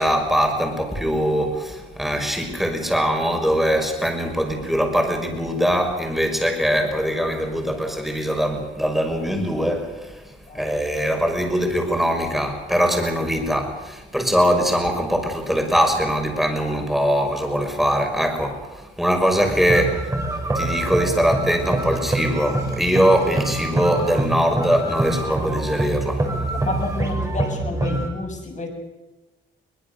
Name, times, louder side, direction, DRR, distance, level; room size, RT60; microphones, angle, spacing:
voice 1, 0.0-20.1 20.5-26.3, equal, ahead, 3 dB, 5.8 m, -22 dB
sound 1, 19.4-28.1, right 2 dB, 15° right, 5.5 m, -25 dB
voice 2, 26.5-28.7, left 2 dB, 40° left, 2 dB, 7.3 m, -30 dB
23.0 x 20.5 x 6.9 m, 1.1 s
cardioid pair, 90°, 20 cm